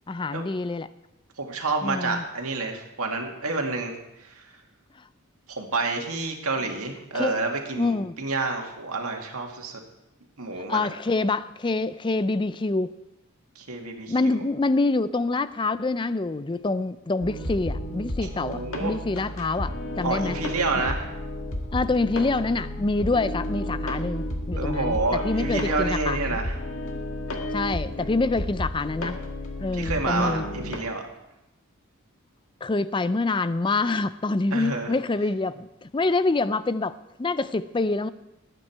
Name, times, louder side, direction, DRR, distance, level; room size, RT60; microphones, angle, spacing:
voice 1, 0.1-0.9 1.8-2.2 7.1-7.4 7.7-8.2 10.6-12.9 14.1-20.4 21.7-26.4 27.5-29.2 29.6-30.4 32.6-38.1, left 3 dB, 20° left, 15 dB, 0.4 m, -26 dB
voice 2, 1.4-4.5 5.5-9.8 10.4-10.9 13.6-14.4 18.2-18.9 20.0-21.1 24.5-26.6 28.0-28.1 29.7-31.0 34.5-34.9, right 3 dB, 80° right, 2 dB, 2.1 m, -29 dB
sound 1, 17.2-30.8, left 1 dB, 70° left, 1.9 m, -32 dB
19.5 x 9.1 x 4.6 m, 0.95 s
head